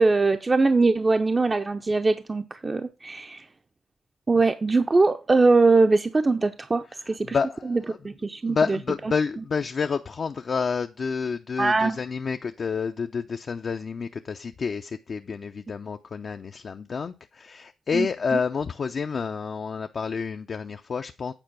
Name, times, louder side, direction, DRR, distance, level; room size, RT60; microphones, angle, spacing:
voice 1, 0.0-3.5 4.3-7.4 7.7-8.8 11.6-12.0 17.9-18.1, right 3 dB, 35° right, 7 dB, 0.7 m, -22 dB
voice 2, 7.2-8.0 8.4-21.3, left 5 dB, 60° left, 7 dB, 0.6 m, -29 dB
9.0 x 4.6 x 5.9 m, 0.30 s
cardioid pair, 55°, 0 cm